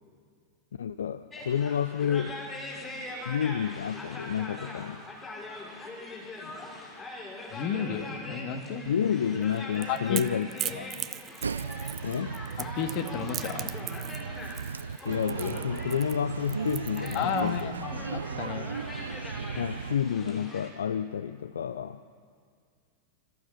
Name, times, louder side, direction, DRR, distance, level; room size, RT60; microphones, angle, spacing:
voice 1, 0.8-2.4 3.3-5.0 8.9-10.9 12.0-12.5 15.0-17.7 19.6-22.0, left 8 dB, 65° left, 14 dB, 0.5 m, -30 dB
sound 1, 1.3-20.7, left 2 dB, 20° left, 6.0 m, -42 dB
voice 2, 7.5-8.8 9.9-10.2 12.6-13.8 17.1-18.7, left 7 dB, 40° left, 7 dB, 2.0 m, -32 dB
Crackle / Crack, 9.4-17.6, right 11 dB, 30° right, 0.7 m, -39 dB
sound 2, 11.4-20.0, right 5 dB, 75° right, 0.4 m, -36 dB
29.5 x 14.5 x 6.0 m, 2.2 s
figure-of-eight pair, 90°, 0 cm